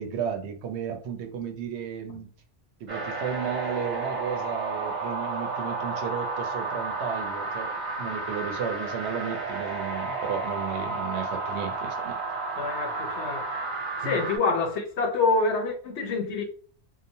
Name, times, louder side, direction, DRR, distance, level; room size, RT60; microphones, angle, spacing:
voice 1, 0.0-2.3 2.8-12.2 14.0-14.2, right 7 dB, 80° right, 0.9 m, -34 dB
sound 1, 2.9-14.4, right 3 dB, 45° right, 0.8 m, -32 dB
voice 2, 12.6-13.5 14.0-16.4, left 3 dB, 80° left, 0.9 m, -26 dB
2.8 x 2.2 x 2.6 m
omnidirectional pair, 1.1 m